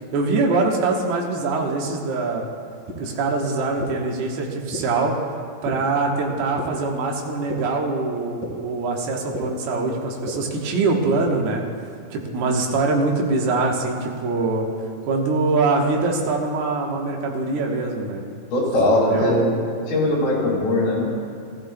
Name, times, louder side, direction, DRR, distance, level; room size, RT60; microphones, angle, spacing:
voice 1, 0.1-2.4 3.0-5.1 5.6-11.6 12.1-14.7 15.1-18.2 19.1-19.6, right 3 dB, 80° right, 0 dB, 3.1 m, -23 dB
sound 1, 2.9-3.0 3.8-3.9 4.7-4.8 5.6-5.7 6.6-6.7 7.5-7.6 8.4-8.5 9.3-9.4 10.3-10.4 11.2-11.3, left 2 dB, 50° right, 3.8 m, -30 dB
voice 2, 18.5-19.3 19.9-21.1, left 2 dB, 75° left, -8 dB, 3.9 m, -20 dB
17.0 x 15.5 x 2.2 m, 2.5 s
omnidirectional pair, 4.4 m